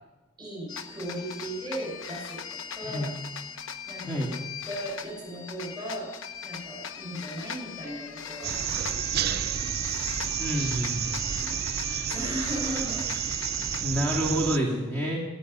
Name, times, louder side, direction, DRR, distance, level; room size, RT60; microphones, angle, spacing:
voice 1, 0.4-3.2 3.9-4.4 4.7-6.1 6.4-8.6 11.4-13.0, equal, 20° right, 0 dB, 5.7 m, -37 dB
sound 1, 0.7-13.8, left 7 dB, 65° left, 1.0 m, -40 dB
sound 2, 8.4-14.6, right 9 dB, 45° right, 0.5 m, -30 dB
voice 2, 10.4-11.2 13.8-15.2, equal, 10° left, -3 dB, 2.3 m, -28 dB
17.5 x 14.5 x 5.6 m, 1.1 s
head